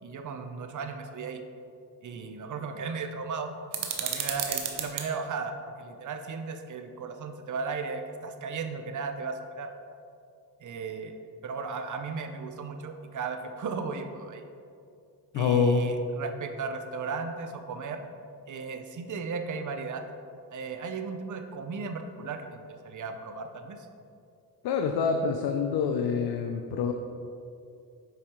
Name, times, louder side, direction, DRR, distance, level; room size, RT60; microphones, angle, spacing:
voice 1, 0.0-1.4 2.0-9.7 10.6-11.1 11.4-14.4 15.3-18.1 18.5-20.0 20.5-23.9, right 4 dB, 50° right, 6 dB, 0.7 m, -36 dB
sound 1, 3.7-5.1, right 8 dB, 90° right, 0.8 m, -32 dB
voice 2, 15.3-15.8 24.6-26.9, left 6 dB, 75° left, 5 dB, 0.5 m, -26 dB
7.6 x 5.0 x 3.0 m, 2.5 s
cardioid pair, 70°, 40 cm